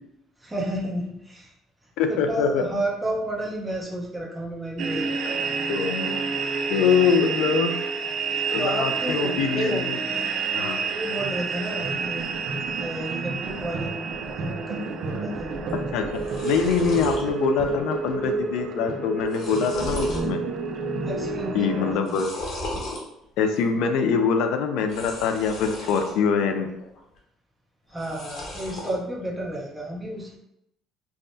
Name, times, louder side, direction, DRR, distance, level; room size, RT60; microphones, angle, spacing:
voice 1, 0.4-1.5 2.1-5.4 8.6-9.9 10.6-12.3 12.8-14.1 14.4-15.6 21.1-22.2 27.9-30.4, right 1 dB, 10° right, -3 dB, 0.8 m, -31 dB
voice 2, 2.0-2.6 5.7-7.7 8.5-10.0 10.5-10.8 15.7-16.1 16.4-20.4 21.5-22.3 23.4-26.7, left 6 dB, 80° left, 6 dB, 0.3 m, -24 dB
sound 1, 4.8-22.0, right 4 dB, 55° right, 0.4 m, -29 dB
sound 2, 15.7-15.8 16.0-17.2 17.7-18.1 18.3-18.4 19.0-20.3 20.7-21.2 21.9-23.0 24.8-26.2 26.6-27.2 27.9-29.0, left 1 dB, 55° left, 0.9 m, -35 dB
3.4 x 2.1 x 2.6 m, 0.80 s
cardioid pair, 110°, 0 cm